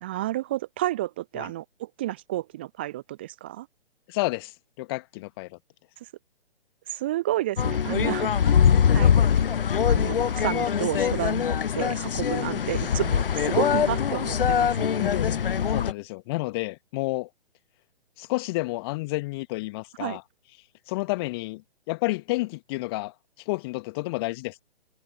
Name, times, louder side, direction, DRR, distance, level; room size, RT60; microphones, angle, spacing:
voice 1, 0.0-3.7 6.0-6.1 6.9-8.5 8.9-9.1 9.9-14.9 20.0-20.2, right 15 dB, 10° right, 0.5 m, -31 dB
voice 2, 4.1-5.6 15.0-17.3 18.2-20.2 20.9-21.6 21.9-24.6, left 22 dB, 25° left, 1.6 m, -30 dB
sound 1, 7.6-15.9, left 7 dB, 60° left, 0.6 m, -23 dB
figure-of-eight pair, 130°, 31 cm